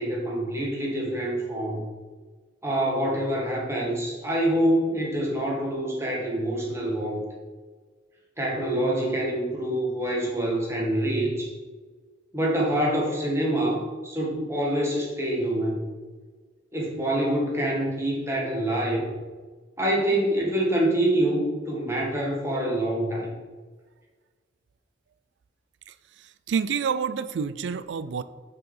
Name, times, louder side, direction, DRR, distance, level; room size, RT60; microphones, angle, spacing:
voice 1, 0.0-1.8 2.6-7.2 8.4-11.5 12.3-15.9 16.7-19.1 19.8-23.3, right 1 dB, 15° right, -3 dB, 1.6 m, -26 dB
voice 2, 25.9-28.2, right 6 dB, 80° right, 14 dB, 0.4 m, -29 dB
6.5 x 4.7 x 5.5 m, 1.4 s
head